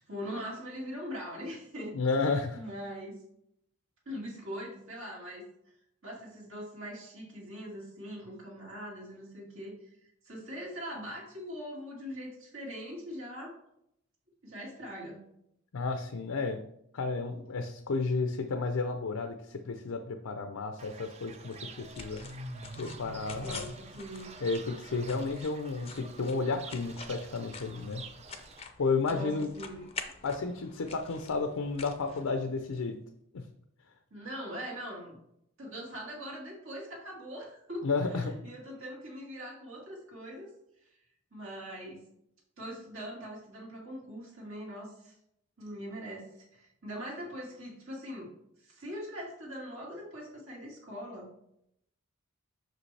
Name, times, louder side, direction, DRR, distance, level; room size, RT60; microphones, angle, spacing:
voice 1, 0.1-2.0 2.4-3.2 4.1-5.5 6.0-9.9 10.2-13.5 14.4-15.2 23.4-24.3 29.1-29.9 34.1-35.2 35.6-40.5 40.9-41.0 41.3-42.0 42.6-45.2 45.6-48.3 48.6-51.3, equal, 65° right, -3 dB, 1.9 m, -42 dB
voice 2, 1.9-2.6 15.7-16.6 16.9-22.2 22.8-23.6 24.4-28.0 28.8-29.5 30.2-33.0 33.3-33.4 37.8-38.3, left 4 dB, 75° left, 6 dB, 0.5 m, -32 dB
Fowl / Bird, 20.8-28.6, right 3 dB, 30° right, 0.4 m, -47 dB
sound 1, 21.5-32.8, left 5 dB, 25° left, 0.5 m, -48 dB
6.0 x 5.1 x 3.3 m, 0.74 s
head